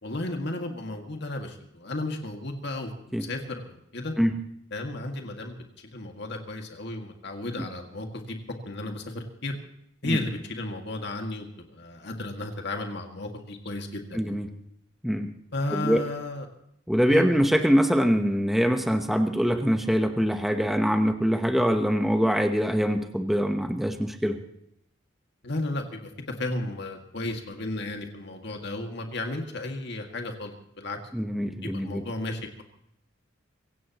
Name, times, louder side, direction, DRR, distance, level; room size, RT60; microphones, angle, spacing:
voice 1, 0.0-4.1 4.7-5.6 5.9-8.4 8.7-9.5 10.0-11.5 11.7-14.4 15.5-16.5 17.1-17.3 25.4-26.1 26.4-31.0 31.6-32.6, left 2 dB, 60° left, 3 dB, 2.1 m, -33 dB
voice 2, 14.1-14.5 15.0-15.4 15.7-16.0 16.9-24.4 31.1-32.0, equal, ahead, 5 dB, 1.0 m, -24 dB
24.5 x 16.5 x 3.1 m, 0.75 s
head